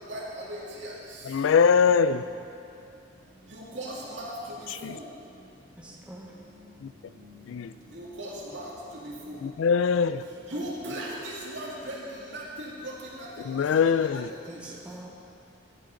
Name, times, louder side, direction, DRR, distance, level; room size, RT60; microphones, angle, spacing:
voice 1, 0.1-0.5 0.8-0.9 3.5-4.3 4.8-4.9 8.0-8.6 9.3-9.4 10.5-11.9 12.3-12.4 12.8-12.9, right 1 dB, 65° right, -5 dB, 2.4 m, -36 dB
voice 2, 1.3-2.2 4.7-5.0 6.8-6.9 7.5-7.7 9.4-10.2 13.4-14.3, left 6 dB, 80° left, 14 dB, 0.4 m, -22 dB
voice 3, 5.8-6.3 10.5-10.6 14.5-15.1, right 1 dB, 5° right, -3 dB, 1.0 m, -44 dB
13.0 x 7.7 x 5.2 m, 2.6 s
head